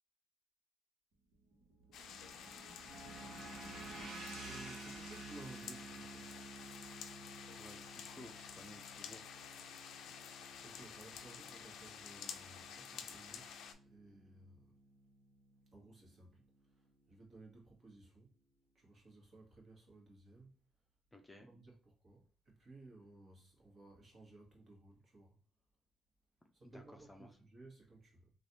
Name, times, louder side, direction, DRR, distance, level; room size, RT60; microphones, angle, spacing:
sound 1, 1.3-9.6, right 2 dB, 85° right, 1.0 m, -53 dB
sound 2, 1.9-13.7, left 7 dB, 80° left, 0.4 m, -51 dB
sound 3, 2.9-17.7, right 2 dB, 20° right, 1.3 m, -56 dB
voice 1, 4.4-6.3 10.6-14.7 15.7-16.4 16.7-18.3 18.7-20.5 21.4-25.4 26.5-28.3, right 2 dB, 45° right, 1.4 m, -58 dB
voice 2, 7.6-9.3 21.1-21.5 26.6-27.4, left 1 dB, 15° left, 0.5 m, -56 dB
3.2 x 2.4 x 2.7 m
cardioid pair, 90°, 0 cm